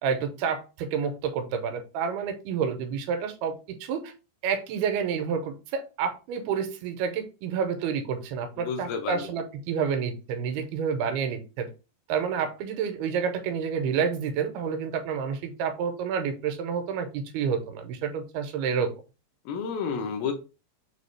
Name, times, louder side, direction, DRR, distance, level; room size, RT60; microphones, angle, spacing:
voice 1, 0.0-4.1 4.4-11.7 12.1-18.9, right 6 dB, 80° right, 2.6 m, -29 dB
voice 2, 8.6-9.3 19.5-20.3, left 6 dB, 75° left, 2.5 m, -31 dB
6.9 x 2.3 x 3.2 m
omnidirectional pair, 4.4 m